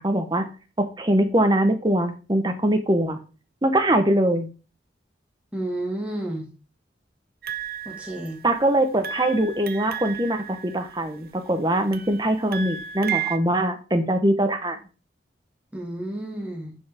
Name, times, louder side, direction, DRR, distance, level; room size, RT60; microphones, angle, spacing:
voice 1, 0.0-0.4 0.8-3.2 3.6-4.5 8.4-14.8, right 1 dB, 20° right, 8 dB, 0.8 m, -22 dB
voice 2, 5.5-6.5 7.9-8.4 15.7-16.7, right 1 dB, 5° right, -1 dB, 1.9 m, -31 dB
sound 1, 7.4-8.6 9.0-11.3 11.9-13.4, right 9 dB, 55° right, 0.7 m, -33 dB
10.0 x 4.7 x 3.5 m, 0.34 s
head